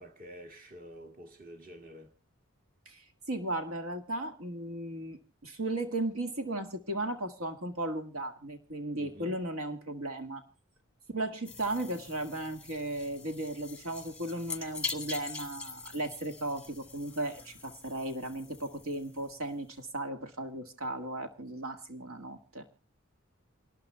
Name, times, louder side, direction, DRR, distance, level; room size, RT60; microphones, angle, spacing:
voice 1, 0.0-2.1 9.0-9.4, equal, 40° right, 2.0 m, -48 dB
voice 2, 3.3-10.4 11.1-22.7, right 1 dB, 85° right, 1.7 m, -36 dB
sound 1, 11.4-19.6, left 5 dB, 5° left, 1.0 m, -44 dB
28.5 x 12.5 x 2.2 m
head